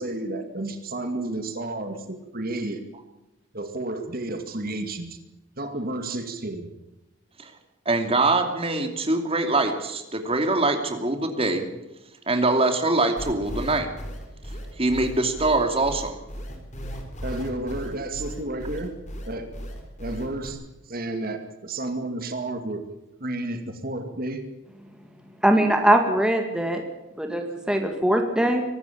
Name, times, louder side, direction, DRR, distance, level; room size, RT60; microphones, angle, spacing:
voice 1, 0.0-2.8 3.5-5.2 5.6-6.7 17.2-19.0 19.3-19.5 20.0-20.6 20.9-22.9 23.2-24.5, right 2 dB, 45° right, 7 dB, 2.1 m, -31 dB
voice 2, 7.9-11.7 12.3-13.9 14.8-16.1, right 2 dB, 30° right, 6 dB, 2.7 m, -23 dB
sound 1, 13.2-20.5, equal, 35° left, 3.9 m, -36 dB
voice 3, 25.4-26.8 27.2-28.6, right 1 dB, 5° right, 4 dB, 2.1 m, -21 dB
24.0 x 13.5 x 8.6 m, 0.97 s
head